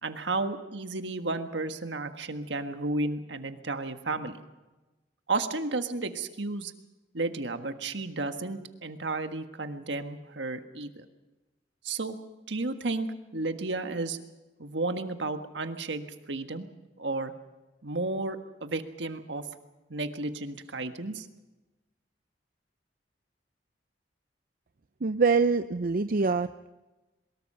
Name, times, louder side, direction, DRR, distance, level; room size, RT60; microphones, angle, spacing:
voice 1, 0.0-4.3 5.3-6.7 7.1-11.0 11.8-12.2 12.5-14.2 14.6-16.7 17.0-17.3 17.8-19.4 19.9-21.3 26.2-26.3, right 3 dB, 70° right, 8 dB, 1.6 m, -33 dB
voice 2, 25.0-26.7, right 4 dB, 50° right, 10 dB, 0.6 m, -25 dB
23.0 x 21.0 x 5.6 m, 1.1 s
head